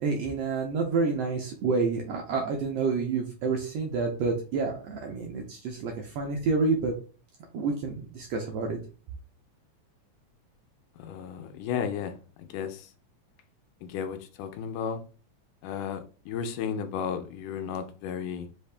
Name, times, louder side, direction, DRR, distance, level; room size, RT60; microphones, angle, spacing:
voice 1, 0.0-6.9 7.5-8.8, right 4 dB, 75° right, 1.5 m, -28 dB
voice 2, 11.0-12.9 13.8-15.0 15.6-18.5, left 7 dB, 85° left, 2.2 m, -34 dB
5.0 x 2.7 x 3.3 m
omnidirectional pair, 3.6 m